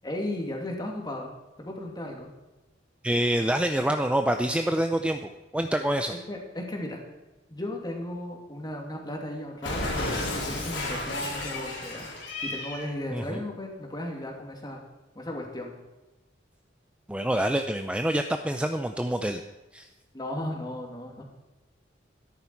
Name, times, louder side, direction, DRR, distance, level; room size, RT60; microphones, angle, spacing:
voice 1, 0.0-1.3 1.6-2.3 6.1-7.0 7.5-9.9 10.4-12.1 12.4-14.8 15.2-15.7 20.1-21.2, left 1 dB, 20° left, 1 dB, 2.4 m, -35 dB
voice 2, 3.0-6.1 13.1-13.4 17.1-19.4 19.7-19.9, right 1 dB, 5° right, 6 dB, 0.5 m, -26 dB
Cat, 9.6-12.9, left 2 dB, 70° left, 3.6 m, -32 dB
13.0 x 11.0 x 4.6 m, 1.1 s
head